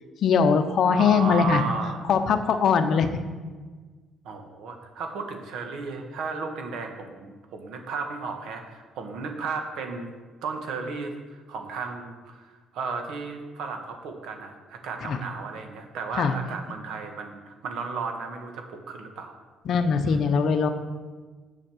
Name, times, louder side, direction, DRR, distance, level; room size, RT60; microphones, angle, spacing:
voice 1, 0.2-1.6 2.1-3.1 15.1-15.2 16.1-16.3 19.6-20.7, left 6 dB, 55° left, 9 dB, 0.8 m, -21 dB
voice 2, 0.9-2.0 2.9-3.0 4.2-10.1 10.4-19.3 20.0-20.2, right 4 dB, 75° right, 4 dB, 1.5 m, -34 dB
7.5 x 7.5 x 6.3 m, 1.4 s
cardioid pair, 140°, 0 cm